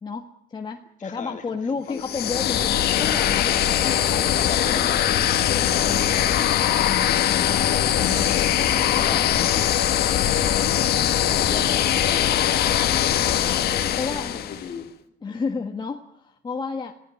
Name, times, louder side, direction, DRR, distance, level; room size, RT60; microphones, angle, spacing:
voice 1, 0.0-4.7 5.9-6.4 6.8-9.3 13.3-13.6 14.0-14.4 15.2-16.9, left 4 dB, 25° left, 3 dB, 1.5 m, -33 dB
voice 2, 1.0-2.1 3.8-5.2 8.8-9.4 11.2-12.7 13.8-14.9, left 7 dB, 50° left, 5 dB, 3.1 m, -38 dB
sound 1, 2.0-14.7, left 11 dB, 70° left, 1.9 m, -21 dB
26.0 x 16.0 x 9.0 m, 0.73 s
cardioid pair, 110°, 17 cm